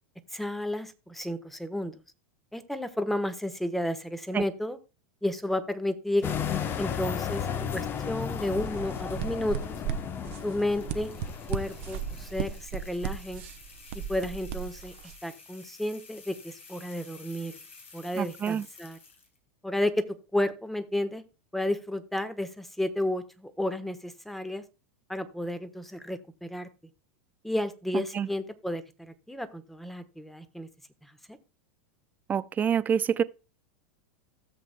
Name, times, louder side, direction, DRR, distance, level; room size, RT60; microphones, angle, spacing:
voice 1, 0.3-2.0 2.5-4.8 5.2-6.3 6.8-7.5 7.7-9.8 10.4-11.1 11.5-13.4 14.1-14.9 15.2-17.6 17.9-19.0 19.6-21.2 21.5-24.6 25.1-26.7 27.4-30.7 31.0-31.4, left 1 dB, 5° left, 1.2 m, -32 dB
sound 1, 6.2-12.5, left 8 dB, 30° left, 1.0 m, -34 dB
sound 2, 8.5-15.1, right 9 dB, 60° right, 0.9 m, -37 dB
sound 3, 10.6-19.4, left 4 dB, 75° left, 3.6 m, -51 dB
voice 2, 18.2-18.6 28.1-28.3 32.3-33.2, right 8 dB, 25° right, 0.5 m, -26 dB
16.5 x 7.6 x 2.2 m
hypercardioid pair, 90°, 7 cm